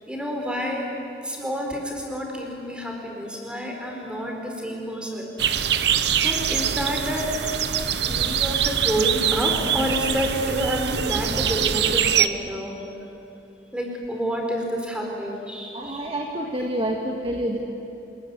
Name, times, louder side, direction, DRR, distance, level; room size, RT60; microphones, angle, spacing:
voice 1, 0.1-0.9 1.2-12.7 13.7-16.1, equal, 5° right, 1 dB, 4.5 m, -29 dB
sound 1, 5.4-12.3, right 8 dB, 60° right, 1.0 m, -23 dB
voice 2, 15.7-17.6, right 1 dB, 30° right, 0 dB, 1.9 m, -28 dB
27.5 x 21.5 x 9.8 m, 2.9 s
head